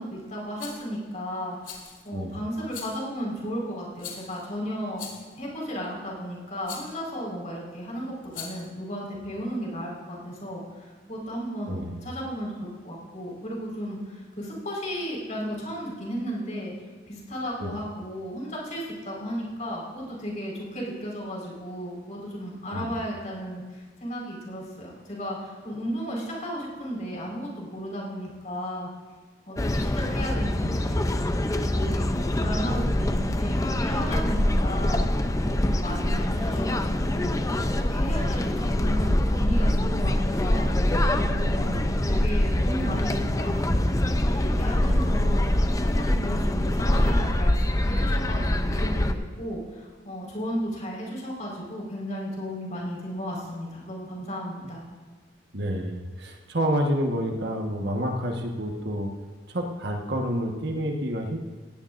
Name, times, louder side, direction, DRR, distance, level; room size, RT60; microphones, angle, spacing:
voice 1, 0.0-1.8 2.0-5.1 5.4-16.7 17.1-28.9 29.5-31.3 31.7-35.0 35.4-37.4 37.7-40.7 41.1-45.5 45.8-54.8, equal, 40° left, -3 dB, 4.7 m, -34 dB
Rattle, 0.6-0.9 1.6-2.1 2.7-3.1 4.0-4.4 4.9-5.4 6.6-7.0 8.2-8.7, left 6 dB, 90° left, 2.8 m, -40 dB
sound 1, 29.6-49.1, left 1 dB, 15° left, 0.6 m, -24 dB
voice 2, 44.8-45.1 55.5-59.1 59.5-61.4, equal, 60° right, 2 dB, 1.4 m, -29 dB
18.5 x 16.0 x 2.6 m, 1.4 s
head